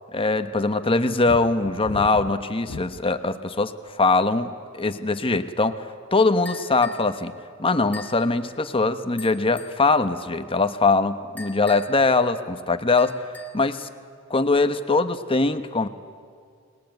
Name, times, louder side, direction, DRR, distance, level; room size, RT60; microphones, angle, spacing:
voice 1, 0.1-5.8 6.1-7.3 7.6-13.2 13.5-13.9 14.3-15.9, left 3 dB, 25° left, 9 dB, 1.1 m, -22 dB
sound 1, 1.3-3.2 3.9-4.3, left 4 dB, 80° left, 0.6 m, -36 dB
sound 2, 6.5-7.1 7.9-8.2 9.2-9.8 11.4-12.1 13.0-13.7, left 2 dB, 10° left, 2.4 m, -42 dB
30.0 x 21.0 x 9.2 m, 2.2 s
head